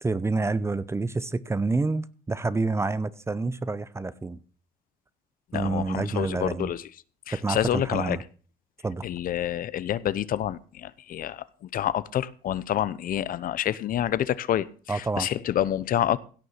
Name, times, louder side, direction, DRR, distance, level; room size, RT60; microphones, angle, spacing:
voice 1, 0.0-4.4 5.5-6.7 7.3-8.2 8.8-9.0 14.9-15.3, right 3 dB, 15° right, 17 dB, 0.7 m, -28 dB
voice 2, 5.5-6.8 7.3-8.2 9.0-16.2, left 11 dB, 55° left, 17 dB, 0.8 m, -28 dB
16.5 x 6.6 x 5.8 m, 0.39 s
cardioid pair, 110°, 17 cm